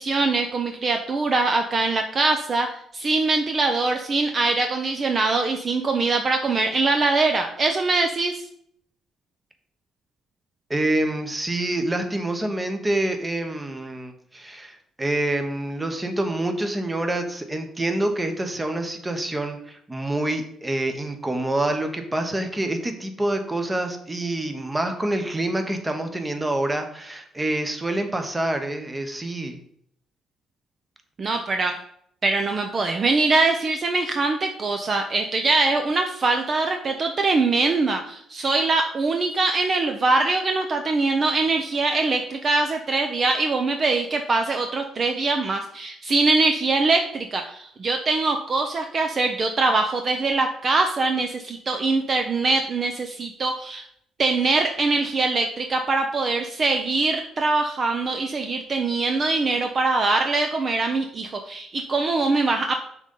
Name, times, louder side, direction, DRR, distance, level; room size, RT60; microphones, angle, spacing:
voice 1, 0.0-8.5 31.2-31.8 32.2-53.9 54.2-62.8, right 3 dB, 40° right, 5 dB, 0.6 m, -23 dB
voice 2, 10.7-29.6, right 1 dB, 15° right, 6 dB, 1.0 m, -27 dB
6.1 x 3.8 x 5.5 m, 0.69 s
cardioid pair, 100°, 0 cm